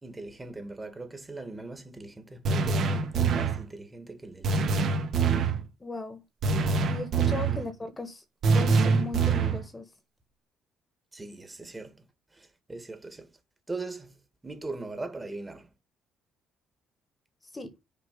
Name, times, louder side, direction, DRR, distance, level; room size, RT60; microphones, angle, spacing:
voice 1, 0.0-4.9 7.5-7.7 11.1-12.0 12.3-13.3 13.7-14.2 14.4-15.7, right 3 dB, 20° right, 1.7 m, -40 dB
sound 1, 2.4-3.6 4.4-5.6 6.4-7.6 8.4-9.6, right 4 dB, 65° right, 1.8 m, -24 dB
voice 2, 5.8-6.2 6.9-8.2 8.5-9.9 17.5-17.7, left 2 dB, 20° left, 1.5 m, -37 dB
6.1 x 4.9 x 5.2 m
cardioid pair, 90°, 0 cm